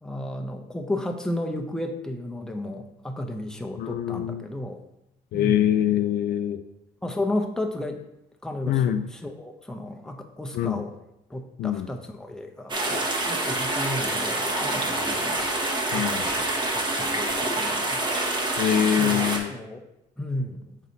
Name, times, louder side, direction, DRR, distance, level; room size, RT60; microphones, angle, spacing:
voice 1, 0.0-4.8 5.3-5.7 7.0-8.0 8.4-10.9 11.3-15.5 15.9-18.0 19.0-19.8 20.2-20.8, left 1 dB, 5° left, 3 dB, 0.7 m, -33 dB
voice 2, 3.8-4.5 5.3-6.6 8.7-9.0 10.5-10.8 11.6-11.9 15.9-16.3 18.6-19.5, left 10 dB, 65° left, 9 dB, 0.4 m, -24 dB
sound 1, 12.7-19.4, right 2 dB, 25° right, 1.2 m, -26 dB
6.2 x 4.0 x 4.0 m, 0.86 s
cardioid pair, 110°, 17 cm